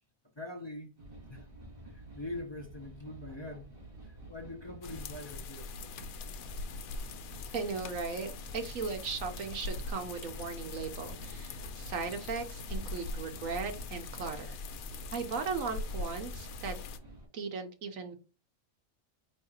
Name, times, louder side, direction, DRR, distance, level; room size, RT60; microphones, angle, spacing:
voice 1, 0.3-0.9 1.3-1.5 1.9-3.8 4.0-5.8, left 1 dB, 35° left, 0.4 m, -43 dB
sound 1, 1.0-17.3, right 1 dB, 40° right, 2.4 m, -51 dB
sound 2, 4.8-17.0, left 3 dB, 85° left, 1.1 m, -42 dB
voice 2, 7.5-14.6 15.1-16.8 17.3-18.2, right 5 dB, 75° right, 1.3 m, -37 dB
4.7 x 3.1 x 2.8 m
omnidirectional pair, 1.4 m